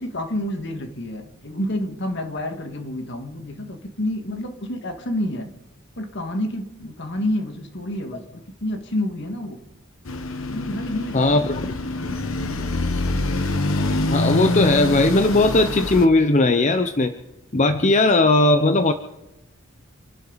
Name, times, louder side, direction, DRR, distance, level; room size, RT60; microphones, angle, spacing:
voice 1, 0.0-5.5 6.0-9.6 10.5-11.4, left 1 dB, 55° left, 1.8 m, -29 dB
sound 1, 10.0-16.1, left 2 dB, 75° left, 1.2 m, -25 dB
voice 2, 11.1-11.5 14.1-17.1 17.5-18.9, left 2 dB, 35° left, 0.7 m, -18 dB
27.5 x 12.0 x 4.0 m
head